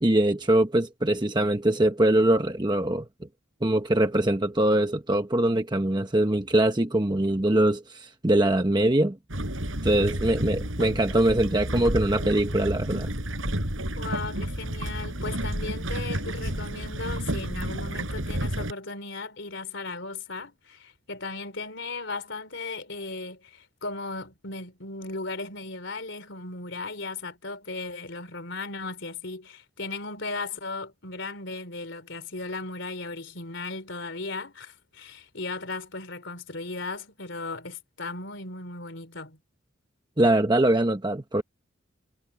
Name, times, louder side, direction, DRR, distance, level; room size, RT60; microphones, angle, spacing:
voice 1, 0.0-3.1 3.6-9.2 9.8-13.1 40.2-41.4, right 1 dB, 20° right, 1.0 m, -23 dB
sound 1, 9.3-18.7, right 1 dB, 80° right, 7.1 m, -31 dB
voice 2, 10.6-11.1 13.9-39.4, left 3 dB, 65° left, 4.0 m, -36 dB
head